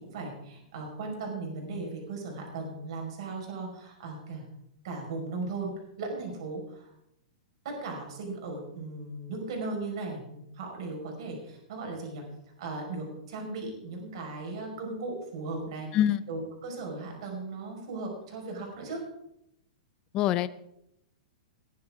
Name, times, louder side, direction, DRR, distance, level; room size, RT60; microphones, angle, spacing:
voice 1, 0.1-4.5 4.8-5.7 6.0-6.9 7.6-12.2 12.6-15.9 16.3-19.0, right 3 dB, 45° right, 1 dB, 5.2 m, -37 dB
voice 2, 20.1-20.5, left 11 dB, 20° left, 15 dB, 0.5 m, -24 dB
20.0 x 10.5 x 3.8 m, 0.80 s
supercardioid pair, 175°, 4 cm